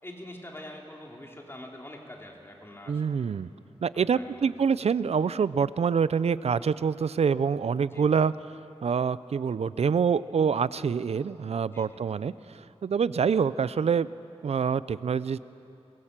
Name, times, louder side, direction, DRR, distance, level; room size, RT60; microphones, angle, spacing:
voice 1, 0.0-3.2 3.9-4.5 7.9-8.2 11.7-12.0 13.2-13.3, left 1 dB, 20° left, 0 dB, 2.9 m, -45 dB
voice 2, 2.9-3.5 3.8-14.1 14.4-15.4, right 6 dB, 75° right, 17 dB, 0.5 m, -26 dB
23.5 x 22.5 x 7.5 m, 2.8 s
wide cardioid pair, 100°, 11 cm